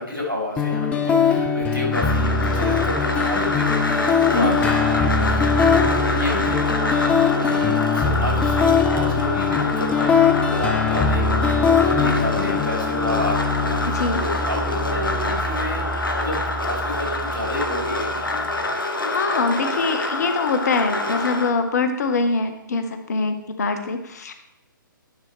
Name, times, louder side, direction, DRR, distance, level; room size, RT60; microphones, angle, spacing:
voice 1, 0.0-18.3, left 1 dB, 90° right, -3 dB, 3.2 m, -30 dB
sound 1, 0.6-18.5, left 5 dB, 10° left, 0.4 m, -22 dB
sound 2, 1.9-21.5, left 2 dB, 75° left, 1.1 m, -26 dB
voice 2, 4.3-4.6 13.9-14.2 19.0-24.3, left 4 dB, 50° left, 8 dB, 0.9 m, -23 dB
10.5 x 5.6 x 3.1 m, 0.84 s
figure-of-eight pair, 125°, 11 cm